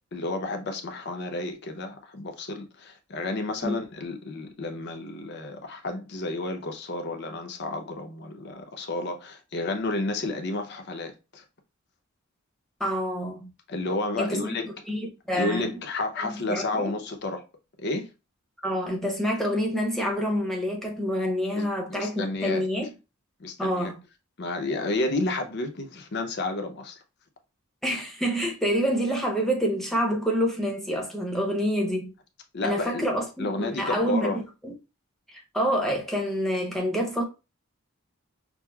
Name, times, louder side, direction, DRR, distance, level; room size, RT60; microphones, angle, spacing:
voice 1, 0.1-11.4 13.7-14.7 15.4-17.4 17.8-18.1 21.5-22.7 23.4-23.9 24.4-27.0 32.5-33.1 33.4-34.4, left 2 dB, 50° left, 0.6 m, -31 dB
voice 2, 12.8-13.5 14.2-14.5 14.9-15.7 16.2-16.9 18.6-22.9 23.6-23.9 27.8-32.1 32.6-34.7 35.3-37.2, equal, ahead, 0.8 m, -27 dB
6.1 x 2.1 x 2.3 m
head